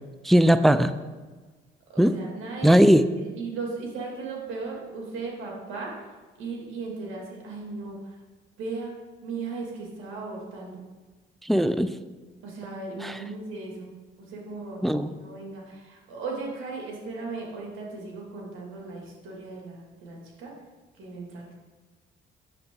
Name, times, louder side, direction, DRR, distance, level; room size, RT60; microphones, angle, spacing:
voice 1, 0.2-0.9 2.0-2.2 2.6-3.0 11.4-11.9 13.0-13.2 14.8-15.1, equal, ahead, 12 dB, 0.3 m, -19 dB
voice 2, 1.9-2.8 3.4-6.1 6.4-8.2 8.6-8.9 9.2-10.8 12.4-13.9 14.2-20.5 21.0-21.5, right 3 dB, 85° right, -2 dB, 2.4 m, -37 dB
9.1 x 6.7 x 3.8 m, 1.3 s
cardioid pair, 90°, 20 cm